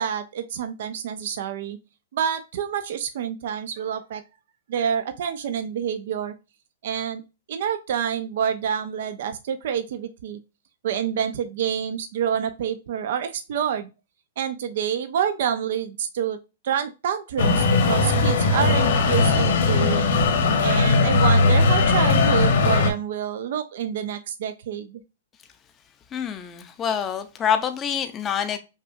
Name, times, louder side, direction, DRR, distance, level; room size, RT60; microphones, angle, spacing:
voice 1, 0.0-1.8 2.1-4.2 4.7-6.3 6.8-7.2 7.5-10.4 10.8-13.9 14.4-16.4 16.6-20.2 20.6-25.0, right 8 dB, 65° right, 0.5 m, -27 dB
sound 1, 17.4-22.9, left 3 dB, 70° left, 1.2 m, -19 dB
voice 2, 26.1-28.6, left 8 dB, 20° left, 0.5 m, -26 dB
5.6 x 2.3 x 2.6 m
hypercardioid pair, 140°, 0 cm